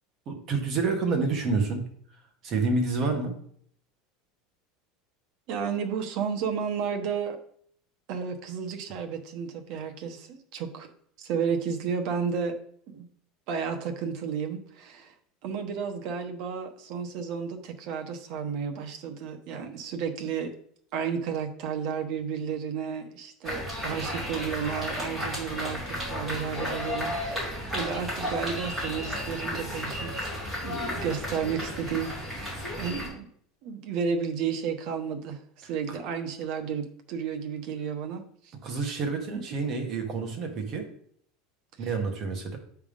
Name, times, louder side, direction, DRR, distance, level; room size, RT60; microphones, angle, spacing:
voice 1, 0.3-1.9 2.4-3.4 35.6-35.7 38.6-40.9 41.8-42.6, right 4 dB, 35° right, 3 dB, 1.5 m, -28 dB
voice 2, 5.5-7.4 8.1-10.9 11.2-12.6 12.9-13.0 13.5-15.1 15.4-20.5 20.9-30.3 30.6-33.3 33.6-38.5 39.2-39.6 41.8-41.9, right 6 dB, 50° right, 5 dB, 1.1 m, -32 dB
sound 1, 23.4-33.1, left 1 dB, 5° right, 3.0 m, -33 dB
8.5 x 3.5 x 5.3 m, 0.63 s
supercardioid pair, 165°, 0 cm